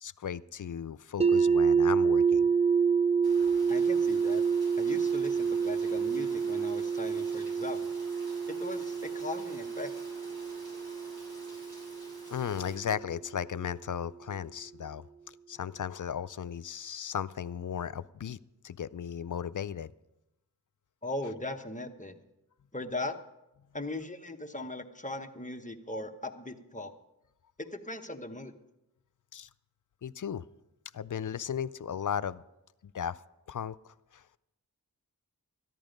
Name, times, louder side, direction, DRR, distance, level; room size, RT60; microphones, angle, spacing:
voice 1, 0.0-2.5 12.3-18.4 18.6-19.9 29.3-29.5 30.0-30.4 30.9-32.4 32.8-33.2 33.5-34.2, left 8 dB, 55° left, 16 dB, 0.4 m, -36 dB
sound 1, 1.2-13.1, right 6 dB, 15° right, 0.8 m, -28 dB
Rain, 3.2-12.7, equal, 85° right, 6.1 m, -50 dB
voice 2, 3.7-4.4 4.8-7.9 8.5-9.9 21.0-22.2 22.7-23.1 23.7-26.9 27.6-28.6, left 2 dB, 20° left, 5 dB, 1.0 m, -39 dB
14.5 x 11.0 x 5.2 m, 0.92 s
wide cardioid pair, 65°, 38 cm